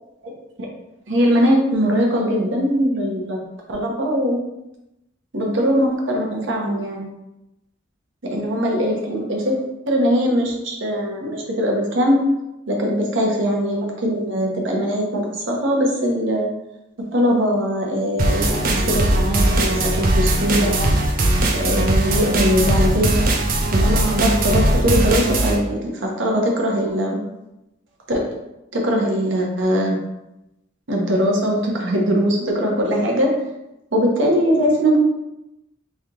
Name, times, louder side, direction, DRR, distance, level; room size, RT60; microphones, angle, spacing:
voice 1, 1.1-3.4 3.7-4.4 5.3-7.1 8.2-9.6 9.9-12.2 12.7-16.5 17.1-20.9 21.5-23.3 23.7-27.2 28.1-28.2 28.7-30.0 30.9-33.3 33.9-35.0, equal, 75° right, 0 dB, 0.8 m, -21 dB
sound 1, 18.2-25.6, right 1 dB, 45° right, 0.5 m, -19 dB
3.3 x 2.8 x 3.6 m, 0.91 s
head